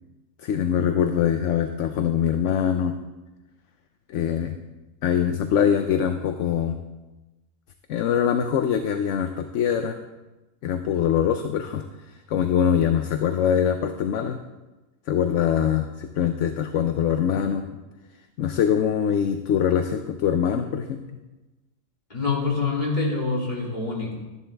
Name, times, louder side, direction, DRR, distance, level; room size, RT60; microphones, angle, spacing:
voice 1, 0.4-2.9 4.1-4.6 5.0-6.8 7.9-10.0 10.6-14.4 15.1-17.7 18.4-21.0, left 8 dB, 70° left, 7 dB, 0.9 m, -23 dB
voice 2, 22.1-24.1, left 4 dB, 35° left, -5 dB, 3.1 m, -25 dB
13.0 x 11.0 x 3.5 m, 1.1 s
omnidirectional pair, 1.4 m